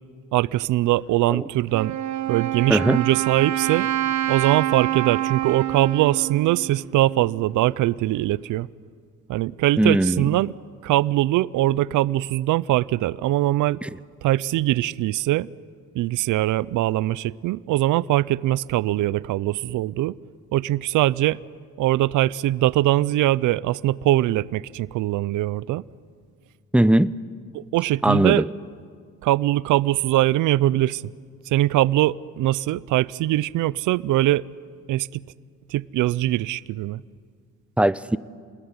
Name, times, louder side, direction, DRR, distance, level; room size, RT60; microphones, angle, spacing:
voice 1, 0.3-2.0 2.3-3.9 4.3-8.7 9.3-10.5 10.8-13.8 14.2-15.5 15.9-20.2 20.5-21.4 21.8-25.8 27.5-28.4 29.2-31.1 31.5-34.4 34.9-35.2 35.7-37.0, right 15 dB, 85° right, 0.6 m, -22 dB
Wind instrument woodwind instrument, 1.7-7.5, right 13 dB, 70° right, 1.3 m, -27 dB
voice 2, 2.7-3.0 9.8-10.3 13.8-13.9 26.7-27.1 28.0-28.5 37.8-38.2, right 1 dB, 5° right, 0.6 m, -19 dB
28.5 x 20.5 x 9.7 m
cardioid pair, 90°, 30 cm